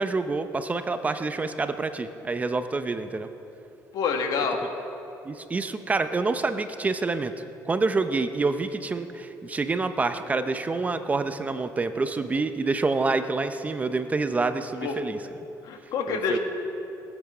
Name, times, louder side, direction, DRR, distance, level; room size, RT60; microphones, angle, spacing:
voice 1, 0.0-3.3 5.2-7.3 7.6-15.2 16.1-16.4, right 3 dB, 20° right, 9 dB, 0.6 m, -27 dB
voice 2, 3.9-4.6 14.8-15.0 15.6-16.4, left 5 dB, 70° left, 4 dB, 1.6 m, -27 dB
19.5 x 8.2 x 6.0 m, 3.0 s
cardioid pair, 120°, 7 cm